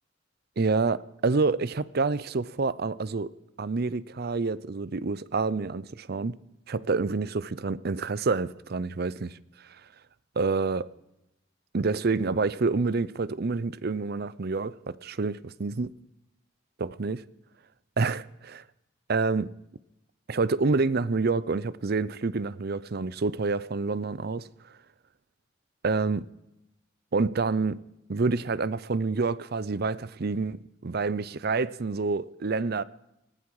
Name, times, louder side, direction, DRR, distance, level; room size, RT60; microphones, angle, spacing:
voice 1, 0.6-3.3 3.6-6.4 6.7-9.4 10.4-10.9 11.7-15.9 16.8-17.2 18.0-18.6 19.1-19.5 20.3-24.5 25.8-26.3 27.1-27.8 28.1-32.8, right 4 dB, 55° right, 0.6 m, -28 dB
19.0 x 15.0 x 4.8 m
head